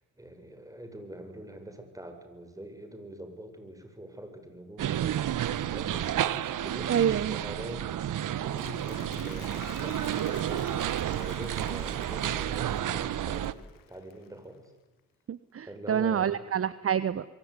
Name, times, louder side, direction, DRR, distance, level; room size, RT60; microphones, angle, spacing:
voice 1, 0.0-7.9 8.3-10.7 11.1-14.7 15.6-16.5, right 1 dB, 10° right, 6 dB, 7.3 m, -44 dB
sound 1, 4.8-13.5, right 11 dB, 60° right, 1.3 m, -31 dB
voice 2, 6.9-7.4 15.3-17.3, right 9 dB, 40° right, 15 dB, 1.1 m, -27 dB
Applause, 8.3-14.7, left 12 dB, 70° left, 1.6 m, -50 dB
25.5 x 23.0 x 9.9 m, 1.1 s
supercardioid pair, 75°, 35 cm